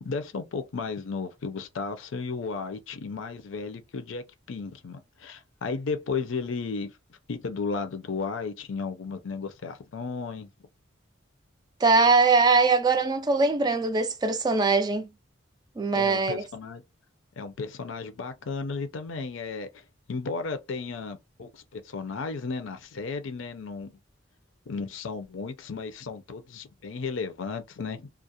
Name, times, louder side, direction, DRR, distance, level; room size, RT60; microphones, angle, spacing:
voice 1, 0.0-7.0 7.3-10.5 15.9-16.8 17.4-19.7 20.1-24.0 24.7-28.1, left 4 dB, 80° left, 0.5 m, -34 dB
voice 2, 11.8-15.1 15.8-16.4, right 4 dB, 20° right, 0.3 m, -22 dB
2.4 x 2.0 x 2.7 m
head